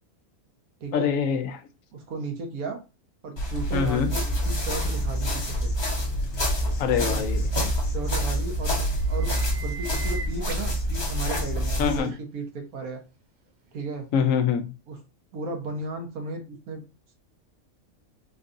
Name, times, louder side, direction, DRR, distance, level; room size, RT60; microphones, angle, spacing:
voice 1, 0.9-1.6 3.7-4.2 6.8-7.5 11.8-12.1 14.1-14.7, left 7 dB, 75° left, 0.9 m, -24 dB
voice 2, 1.9-2.8 3.2-5.7 7.0-7.2 7.9-8.8 9.1-13.0 13.7-14.1 14.9-15.0 15.3-16.8, right 3 dB, 80° right, 1.4 m, -35 dB
sound 1, 3.4-12.0, equal, 30° left, 0.6 m, -27 dB
Insect, 4.1-12.1, left 1 dB, 45° left, 1.2 m, -48 dB
Auissie Whipbird, 8.4-8.5 8.9-10.8 12.1-12.2 13.8-13.9, right 4 dB, 50° right, 0.5 m, -40 dB
3.8 x 2.7 x 2.5 m
omnidirectional pair, 1.5 m